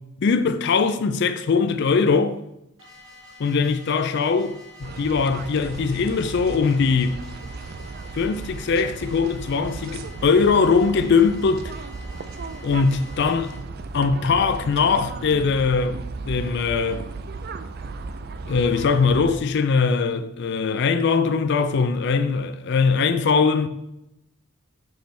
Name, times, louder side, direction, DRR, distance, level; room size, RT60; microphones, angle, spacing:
voice 1, 0.2-2.4 3.4-7.2 8.2-11.7 12.6-13.5 13.9-16.0 16.3-17.0 18.5-23.7, left 5 dB, 55° left, 0.4 m, -21 dB
sound 1, 2.8-13.6, left 2 dB, 80° right, 2.4 m, -47 dB
sound 2, 4.8-19.4, right 3 dB, 50° right, 0.4 m, -35 dB
5.8 x 5.2 x 3.3 m
head